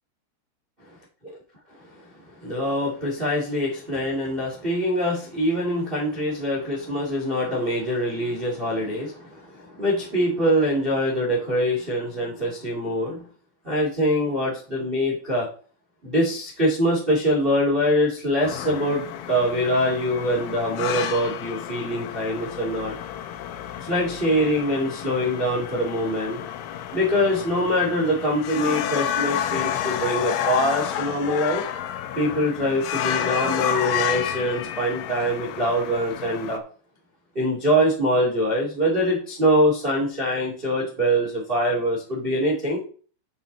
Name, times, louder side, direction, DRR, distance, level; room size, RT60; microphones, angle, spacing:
voice 1, 2.4-13.2 13.6-15.5 16.0-22.9 23.8-26.4 26.9-31.6 32.1-36.6 37.3-42.8, equal, 30° right, -2 dB, 0.9 m, -24 dB
sound 1, 18.4-36.6, left 10 dB, 80° left, 3.2 m, -30 dB
8.6 x 5.7 x 4.0 m, 0.41 s
omnidirectional pair, 5.7 m